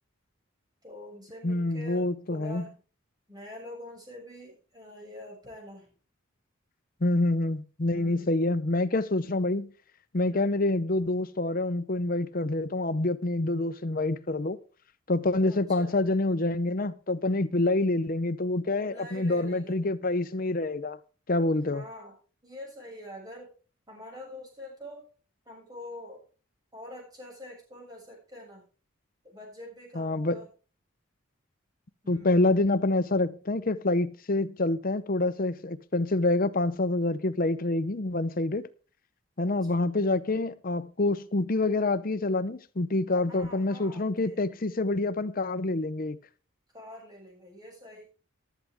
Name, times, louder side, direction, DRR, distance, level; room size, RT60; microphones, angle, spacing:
voice 1, 0.8-2.8 3.3-5.9 7.9-8.3 10.3-10.5 15.5-16.0 18.8-19.8 21.7-22.2 22.4-23.5 23.9-25.1 25.5-26.2 26.7-28.6 29.2-30.5 32.0-32.5 39.4-40.5 43.3-44.4 46.7-48.0, left 1 dB, 20° right, 6.9 m, -45 dB
voice 2, 1.4-2.6 7.0-9.7 10.1-14.6 15.1-21.0 21.3-21.8 30.0-30.4 32.1-38.7 39.4-46.2, left 2 dB, 40° left, 0.8 m, -27 dB
14.5 x 12.5 x 3.6 m
head